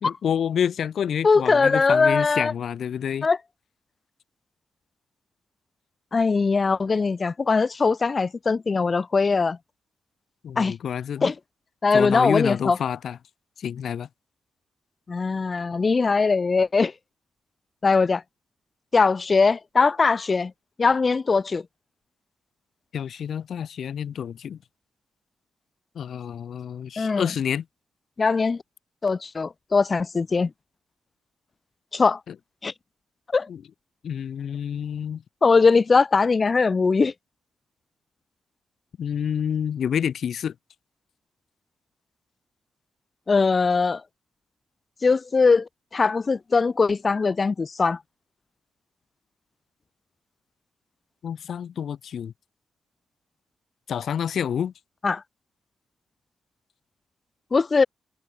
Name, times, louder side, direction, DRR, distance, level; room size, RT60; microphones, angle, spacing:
voice 1, 0.0-3.3 10.4-11.3 11.9-13.2 13.6-14.1 22.9-24.6 25.9-27.6 32.3-32.4 33.5-33.6 34.0-35.2 39.0-40.5 51.2-52.3 53.9-54.7, left 8 dB, 70° left, 1.3 m, -28 dB
voice 2, 1.2-2.5 3.2-3.4 6.1-9.6 10.6-10.7 11.2-11.3 11.8-12.8 15.1-16.9 17.8-18.2 18.9-20.5 20.8-21.6 27.0-27.3 28.2-28.6 29.0-30.5 31.9-32.2 32.6-32.7 33.3-33.5 35.4-37.1 43.3-44.0 45.0-48.0 55.0-55.2 57.5-57.9, left 4 dB, 35° left, 0.4 m, -21 dB
cardioid pair, 100°, 0 cm